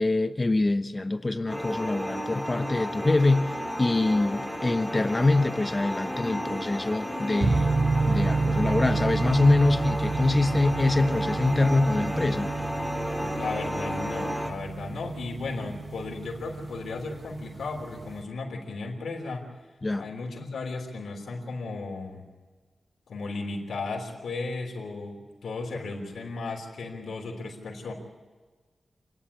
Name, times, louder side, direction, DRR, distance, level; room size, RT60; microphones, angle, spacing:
voice 1, 0.0-12.5 13.2-13.3 19.8-20.1, left 2 dB, 30° left, 0.9 m, -25 dB
sound 1, 1.5-14.5, equal, ahead, 2.3 m, -33 dB
sound 2, 7.4-18.2, right 3 dB, 50° right, 1.2 m, -30 dB
voice 2, 13.2-19.4 20.0-22.2 23.1-27.9, left 3 dB, 90° left, 3.4 m, -35 dB
27.5 x 10.5 x 10.0 m
wide cardioid pair, 85°, 0 cm